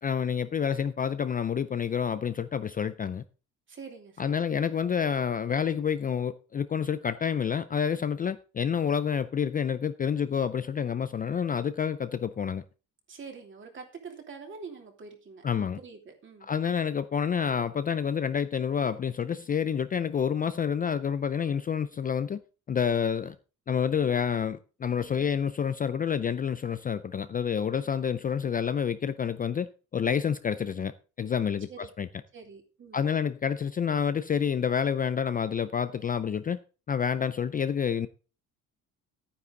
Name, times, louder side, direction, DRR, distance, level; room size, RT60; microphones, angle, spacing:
voice 1, 0.0-3.2 4.2-12.6 15.4-15.8 16.5-22.4 22.7-23.4 23.7-31.7 32.0-32.1 32.9-36.6 36.9-38.1, left 7 dB, 25° left, 0.4 m, -28 dB
voice 2, 3.7-4.8 13.1-16.5 31.7-31.9 32.3-33.1, right 5 dB, 40° right, 3.0 m, -46 dB
11.0 x 9.6 x 3.8 m
cardioid pair, 145°, 32 cm